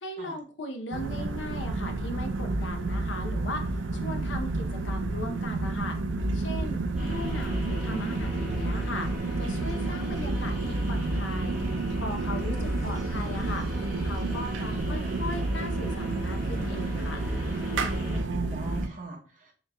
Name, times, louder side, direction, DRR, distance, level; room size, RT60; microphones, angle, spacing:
voice 1, 0.0-6.0 6.3-9.1 9.4-11.5 12.0-13.7 14.0-17.2, left 1 dB, 80° left, 5 dB, 0.7 m, -38 dB
sound 1, 0.9-18.9, right 2 dB, 85° right, 0.4 m, -30 dB
voice 2, 6.8-7.2 17.8-19.5, right 3 dB, 40° right, 1 dB, 0.8 m, -39 dB
sound 2, 7.0-18.2, equal, ahead, 1.5 m, -41 dB
4.1 x 3.8 x 2.2 m, 0.40 s
head